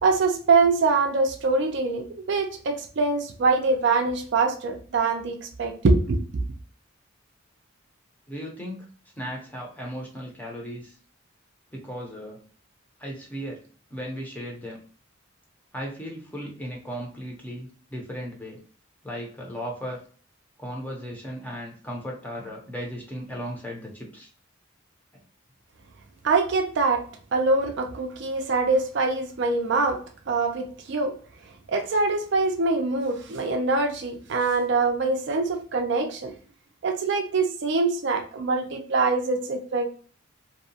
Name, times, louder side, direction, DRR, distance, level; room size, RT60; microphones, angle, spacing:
voice 1, 0.0-6.2 26.2-27.0 27.3-30.0 30.3-31.1 31.7-36.3 36.8-39.9, right 3 dB, 55° right, 4 dB, 0.4 m, -24 dB
voice 2, 8.3-8.9 9.1-11.0 11.7-12.4 13.0-13.6 13.9-14.8 15.7-18.6 19.0-20.0 20.6-24.3, equal, 10° left, -2 dB, 0.6 m, -36 dB
2.6 x 2.2 x 2.7 m, 0.42 s
head